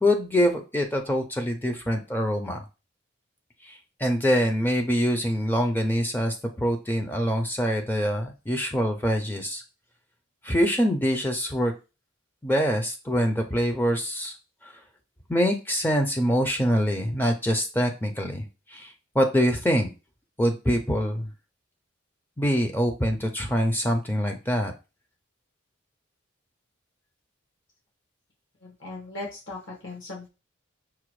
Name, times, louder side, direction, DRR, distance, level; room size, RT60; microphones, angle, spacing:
voice 1, 0.0-2.6 3.6-9.6 10.4-11.7 12.4-14.4 14.6-14.8 15.3-19.9 20.4-21.3 22.4-24.7, equal, 10° left, 4 dB, 0.4 m, -25 dB
voice 2, 28.6-30.3, left 2 dB, 65° left, -3 dB, 1.3 m, -38 dB
5.7 x 2.2 x 3.1 m, 0.29 s
head